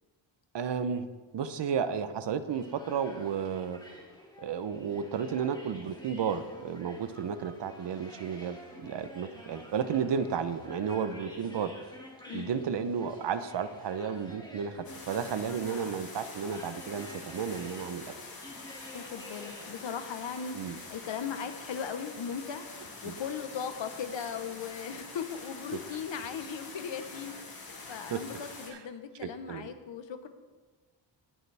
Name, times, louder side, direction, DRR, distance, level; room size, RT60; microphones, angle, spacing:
voice 1, 0.5-1.1 1.3-3.8 4.4-11.7 12.3-18.1 20.5-20.8 23.0-23.1 28.1-28.2 29.2-29.7, right 7 dB, 60° right, 12 dB, 0.8 m, -33 dB
sound 1, 2.5-20.7, left 1 dB, 10° left, 2.4 m, -51 dB
voice 2, 12.3-12.6 18.9-30.3, left 7 dB, 65° left, 8 dB, 1.1 m, -38 dB
sound 2, 14.8-28.7, left 3 dB, 45° left, 2.4 m, -46 dB
19.0 x 6.7 x 3.4 m, 1.3 s
wide cardioid pair, 110°, 48 cm